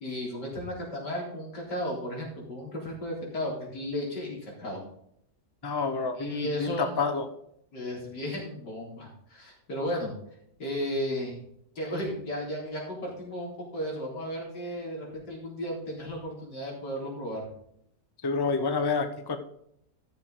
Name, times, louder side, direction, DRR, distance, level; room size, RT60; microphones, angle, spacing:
voice 1, 0.0-4.8 6.2-6.9 7.7-10.1 10.6-11.4 11.8-17.5, equal, 85° left, -2 dB, 4.4 m, -34 dB
voice 2, 5.6-7.3 18.2-19.4, left 4 dB, 20° left, 7 dB, 0.7 m, -28 dB
13.5 x 7.0 x 3.8 m, 0.72 s
omnidirectional pair, 1.8 m